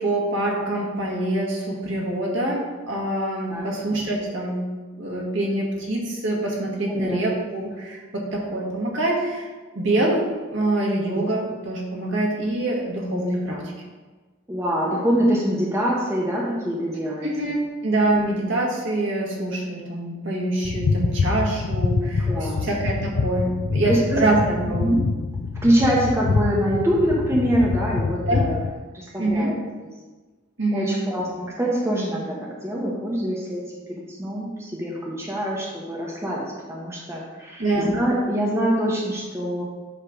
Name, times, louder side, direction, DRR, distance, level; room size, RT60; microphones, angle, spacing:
voice 1, 0.0-13.6 17.2-25.0 28.3-28.4 29.2-29.5 30.6-31.0 37.6-37.9, right 1 dB, 60° right, -2 dB, 1.6 m, -25 dB
voice 2, 6.9-7.2 13.5-13.6 14.5-17.3 22.3-22.6 23.9-24.0 24.7-25.0 25.6-28.6 28.9-29.6 30.7-33.6 33.9-36.4 36.7-39.6, equal, 10° right, -4 dB, 1.0 m, -24 dB
sound 1, 20.6-28.7, left 4 dB, 65° left, 0.4 m, -25 dB
7.7 x 3.3 x 6.4 m, 1.3 s
head